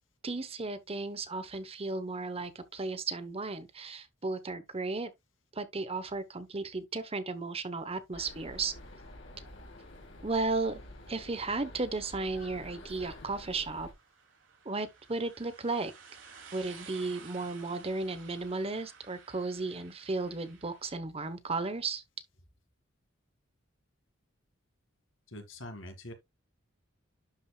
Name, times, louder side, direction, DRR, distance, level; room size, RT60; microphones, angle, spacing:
voice 1, 0.2-5.1 5.5-8.7 10.2-10.8 11.1-13.9 14.6-15.9 16.5-22.0, right 3 dB, 30° right, 1.0 m, -34 dB
sound 1, 8.1-13.9, left 1 dB, 70° left, 3.0 m, -49 dB
sound 2, 12.9-20.9, right 6 dB, 75° right, 2.7 m, -54 dB
voice 2, 25.3-26.1, left 1 dB, 85° left, 2.2 m, -44 dB
11.5 x 5.0 x 2.3 m
head